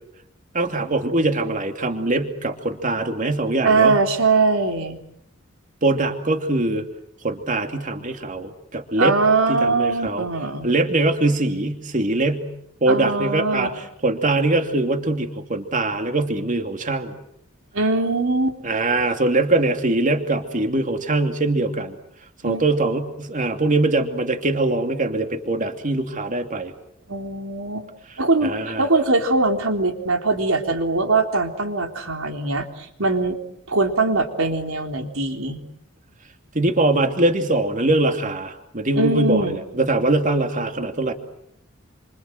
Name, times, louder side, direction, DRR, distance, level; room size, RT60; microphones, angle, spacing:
voice 1, 0.5-4.0 5.8-6.9 7.2-9.2 9.5-10.3 10.6-12.5 12.8-17.2 18.6-22.0 22.4-26.7 28.4-28.8 36.5-41.1, right 2 dB, 40° right, 5 dB, 2.7 m, -22 dB
voice 2, 3.6-5.0 9.0-10.7 12.9-13.7 17.7-18.6 22.4-22.6 27.1-27.9 28.2-33.4 33.7-35.6 39.0-39.6, right 3 dB, 90° right, 4 dB, 3.7 m, -21 dB
28.5 x 26.5 x 7.8 m, 0.76 s
head